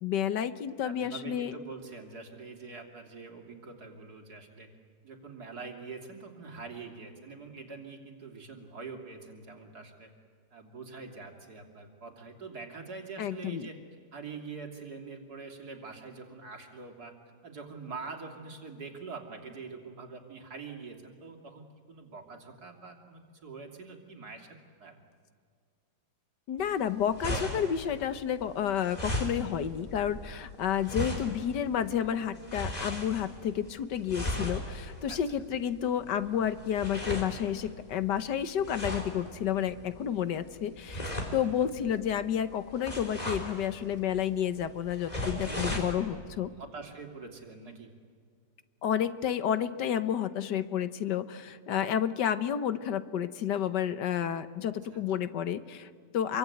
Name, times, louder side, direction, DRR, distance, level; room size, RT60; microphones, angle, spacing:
voice 1, 0.0-1.5 13.2-13.7 26.5-41.0 41.3-46.5 48.8-56.4, left 9 dB, 85° left, 12 dB, 1.7 m, -30 dB
voice 2, 0.8-4.7 5.0-10.1 10.5-13.8 14.1-17.1 17.4-25.0 35.1-35.4 45.4-46.1 46.6-47.9 54.9-55.0, right 4 dB, 65° right, 2 dB, 3.5 m, -44 dB
sound 1, 26.6-45.9, left 1 dB, 20° left, 3.7 m, -38 dB
26.5 x 23.5 x 9.3 m, 2.1 s
omnidirectional pair, 1.8 m